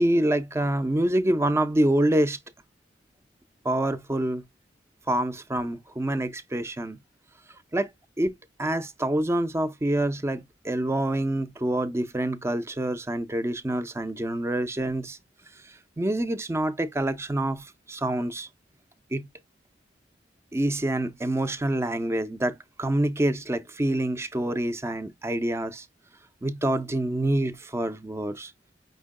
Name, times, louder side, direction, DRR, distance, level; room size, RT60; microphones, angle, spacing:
voice 1, 0.0-2.4 3.6-4.4 5.1-7.0 7.7-7.9 8.2-8.3 8.6-15.2 16.0-18.5 19.1-19.3 20.5-25.8 26.4-28.5, right 1 dB, 15° right, 0.5 m, -26 dB
5.4 x 2.1 x 3.6 m
head